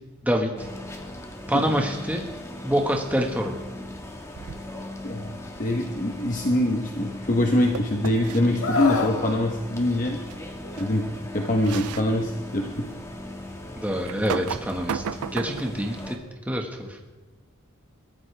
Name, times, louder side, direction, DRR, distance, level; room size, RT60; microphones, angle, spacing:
voice 1, 0.2-0.7 1.5-2.2 2.6-3.5 13.8-15.0 15.3-16.2 16.5-17.0, equal, 5° right, 1 dB, 1.6 m, -26 dB
sound 1, 0.6-16.2, left 1 dB, 15° left, 1.5 m, -39 dB
sound 2, 4.4-4.9 7.7-8.4 10.3-10.4 10.8-10.9 11.6-12.1 12.7-12.8 14.1-15.8, right 7 dB, 85° right, 0.5 m, -33 dB
voice 2, 5.0-10.2 10.8-11.1 11.3-12.7, left 1 dB, 35° left, 2 dB, 1.1 m, -24 dB
Screaming, 8.6-9.2 10.6-10.9, left 3 dB, 75° left, 1.6 m, -25 dB
22.5 x 14.0 x 3.5 m, 1.2 s
head